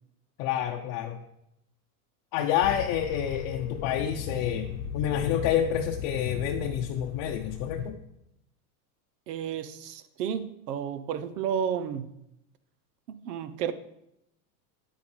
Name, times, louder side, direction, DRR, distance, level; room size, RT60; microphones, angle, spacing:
voice 1, 0.4-1.2 2.3-8.0, left 10 dB, 45° left, 3 dB, 0.7 m, -28 dB
sound 1, 2.6-7.9, left 8 dB, 85° left, 0.9 m, -36 dB
Keyboard (musical), 3.4-5.4, left 7 dB, 5° left, 0.5 m, -49 dB
voice 2, 9.3-12.1 13.1-13.7, right 8 dB, 85° right, 13 dB, 0.9 m, -32 dB
9.8 x 8.6 x 3.2 m, 0.80 s
supercardioid pair, 125°, 47 cm